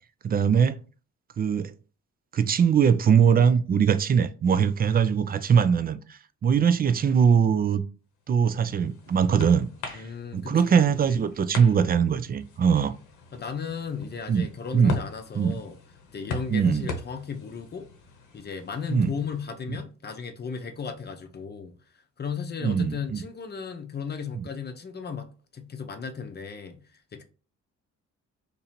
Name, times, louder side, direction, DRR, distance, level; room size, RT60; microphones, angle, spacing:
voice 1, 0.2-0.8 1.4-1.7 2.3-7.8 8.3-10.0 10.3-12.9 14.3-14.5 14.7-15.0 15.4-15.6 16.5-16.9 18.9-19.1 22.6-23.2 24.4-24.5, right 7 dB, 30° right, 0.4 m, -22 dB
sound 1, 8.3-19.4, left 3 dB, 80° left, 0.9 m, -41 dB
voice 2, 9.9-11.2 12.6-12.8 13.3-15.8 16.1-17.9 18.3-21.8 22.2-26.8 27.1-27.2, left 6 dB, 35° left, 0.7 m, -35 dB
2.7 x 2.6 x 4.2 m
cardioid pair, 90°, 30 cm